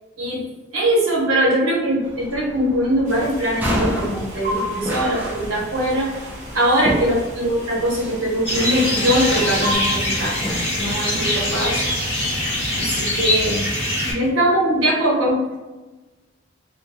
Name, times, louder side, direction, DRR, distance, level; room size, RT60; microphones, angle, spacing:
voice 1, 0.7-6.1 6.5-10.4 10.7-11.8 12.7-13.7 14.0-15.6, right 1 dB, 75° right, -5 dB, 1.0 m, -21 dB
sound 1, 2.0-12.9, equal, 10° right, 0.4 m, -32 dB
sound 2, 3.0-9.8, equal, 35° right, 0.7 m, -34 dB
sound 3, 8.5-14.1, left 1 dB, 30° left, 1.0 m, -23 dB
2.4 x 2.2 x 2.6 m, 1.2 s
head